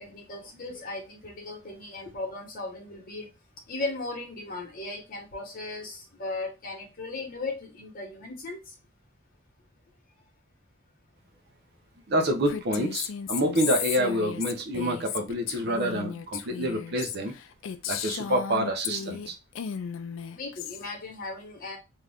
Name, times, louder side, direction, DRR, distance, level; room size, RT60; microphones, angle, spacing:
voice 1, 0.0-3.3 3.7-8.7 20.3-21.8, left 2 dB, 45° left, 1.1 m, -37 dB
voice 2, 12.1-17.3 17.9-19.3, equal, 55° right, 0.6 m, -27 dB
Female speech woman speaking, 12.5-19.3 19.6-20.8, left 8 dB, 75° left, 0.4 m, -35 dB
2.7 x 2.4 x 3.4 m
head